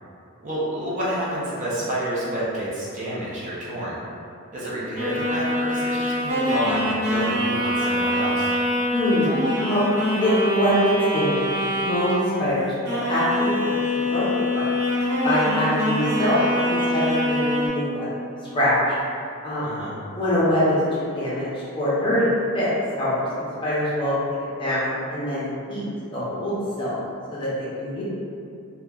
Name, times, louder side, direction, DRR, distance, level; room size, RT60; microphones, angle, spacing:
voice 1, 0.4-4.0 4.5-8.5 19.6-20.0, right 1 dB, 35° right, -8 dB, 0.5 m, -29 dB
sound 1, 4.9-12.5 12.8-17.7, left 1 dB, 90° right, 1.1 m, -24 dB
voice 2, 8.9-9.8 10.2-11.4 11.7-12.1 12.4-13.5 14.1-14.2 14.5-14.7 15.2-18.7 19.4-19.8 20.1-22.7 23.0-24.2 24.6-25.8 26.1-26.9 27.3-28.0, left 1 dB, 20° left, -10 dB, 0.6 m, -24 dB
2.9 x 2.2 x 2.3 m, 2.5 s
head